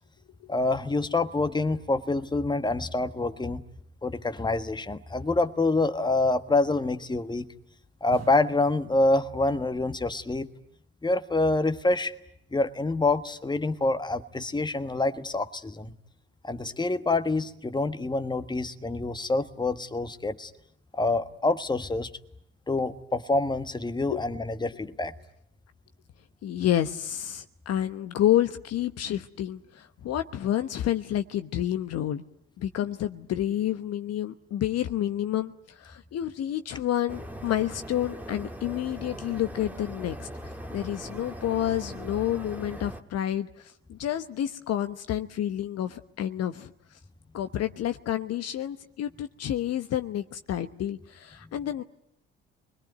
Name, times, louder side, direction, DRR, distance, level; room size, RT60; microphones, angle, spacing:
voice 1, 0.5-3.6 4.0-7.5 8.0-10.5 11.0-12.1 12.5-15.9 16.4-20.5 20.9-22.1 22.7-25.1, left 2 dB, 15° left, 10 dB, 1.4 m, -26 dB
sound 1, 5.1-6.8 8.1-9.6 9.9-10.0, right 6 dB, 55° right, 1.9 m, -49 dB
voice 2, 26.4-32.2 32.6-46.7 47.3-51.8, left 12 dB, 50° left, 9 dB, 1.1 m, -29 dB
sound 2, 37.1-43.0, equal, 5° right, 1.8 m, -40 dB
27.5 x 21.5 x 9.3 m, 0.75 s
hypercardioid pair, 55°, 31 cm